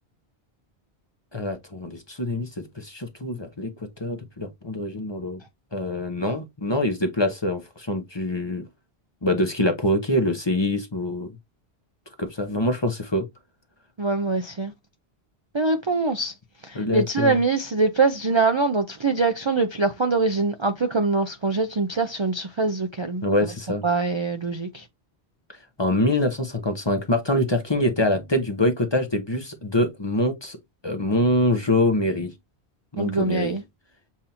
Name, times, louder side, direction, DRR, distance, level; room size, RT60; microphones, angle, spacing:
voice 1, 1.3-5.4 5.7-8.6 9.2-11.3 12.2-13.3 16.7-17.4 23.2-23.8 25.5-30.6 30.8-32.3 32.9-33.6, left 1 dB, 25° left, 0.8 m, -25 dB
voice 2, 14.0-14.7 15.5-16.3 16.6-23.2 23.8-24.8 33.0-33.6, right 3 dB, 35° right, 0.5 m, -23 dB
7.2 x 2.7 x 2.8 m
omnidirectional pair, 1.1 m